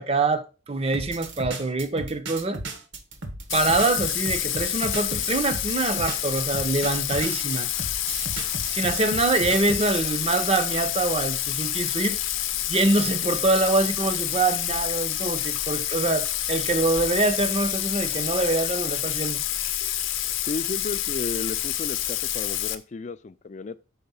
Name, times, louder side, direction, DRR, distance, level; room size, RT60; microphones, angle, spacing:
voice 1, 0.0-2.6 3.5-7.7 8.7-12.2 12.7-19.4, right 2 dB, 30° right, 0.5 m, -25 dB
sound 1, 0.9-10.0, right 2 dB, 65° right, 1.1 m, -35 dB
Bathtub (filling or washing), 3.5-22.8, left 12 dB, 75° left, 0.6 m, -28 dB
voice 2, 20.5-23.8, left 3 dB, 35° left, 0.3 m, -33 dB
5.7 x 4.3 x 5.4 m
head